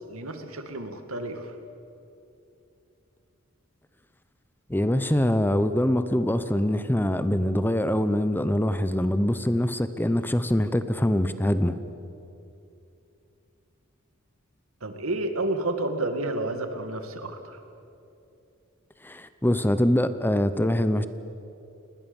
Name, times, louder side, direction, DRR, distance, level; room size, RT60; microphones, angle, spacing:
voice 1, 0.1-1.6 14.8-17.6, right 2 dB, 80° right, 6 dB, 2.3 m, -30 dB
voice 2, 4.7-11.8 19.0-21.1, left 1 dB, 10° left, 12 dB, 0.8 m, -24 dB
29.0 x 20.0 x 7.2 m, 2.8 s
head